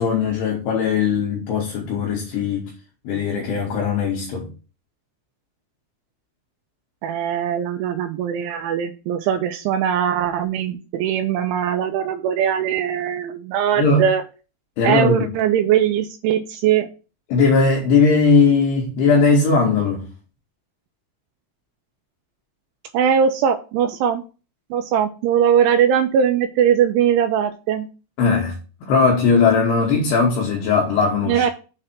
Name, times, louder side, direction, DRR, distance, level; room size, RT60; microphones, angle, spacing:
voice 1, 0.0-2.7 3.0-4.5 13.8-14.1 14.8-15.3 17.3-20.0 28.2-28.5 28.8-31.5, left 4 dB, 75° left, 2.7 m, -18 dB
voice 2, 7.0-14.2 14.8-16.9 22.9-24.2 24.7-27.9 31.2-31.5, right 8 dB, 85° right, 2.7 m, -20 dB
7.7 x 3.3 x 5.8 m
omnidirectional pair, 5.9 m